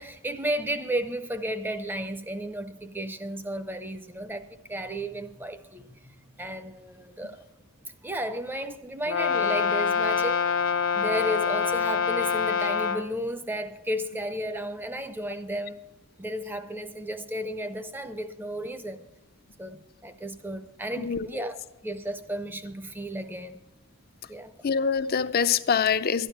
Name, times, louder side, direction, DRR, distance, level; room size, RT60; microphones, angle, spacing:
voice 1, 0.0-7.4 8.0-10.4 10.9-15.8 16.2-19.1 19.6-21.6 21.8-23.6 24.3-24.5, equal, 10° right, 0.6 m, -33 dB
Brass instrument, 9.1-13.1, left 6 dB, 65° left, 1.0 m, -25 dB
voice 2, 21.0-21.4 24.6-26.3, left 6 dB, 45° left, 0.5 m, -25 dB
12.5 x 10.0 x 5.9 m
head